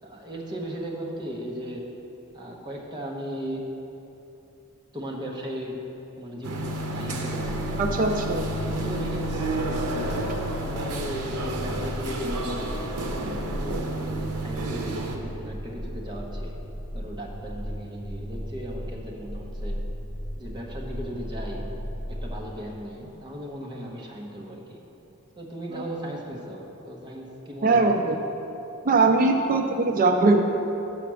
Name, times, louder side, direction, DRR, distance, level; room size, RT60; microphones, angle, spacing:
voice 1, 0.0-1.9 2.3-3.7 4.9-5.8 6.2-7.8 8.6-10.1 10.6-16.6 16.9-19.8 20.4-21.6 22.1-24.8 25.4-28.2, equal, 20° right, -2 dB, 0.9 m, -37 dB
sound 1, 6.4-15.2, right 2 dB, 90° right, 0.7 m, -31 dB
sound 2, 7.4-22.5, equal, 20° left, 1.7 m, -36 dB
voice 2, 7.8-8.5 25.7-25.8 27.6-28.2 28.8-30.5, right 3 dB, 40° right, 4 dB, 0.4 m, -21 dB
5.8 x 5.7 x 6.2 m, 3.0 s
head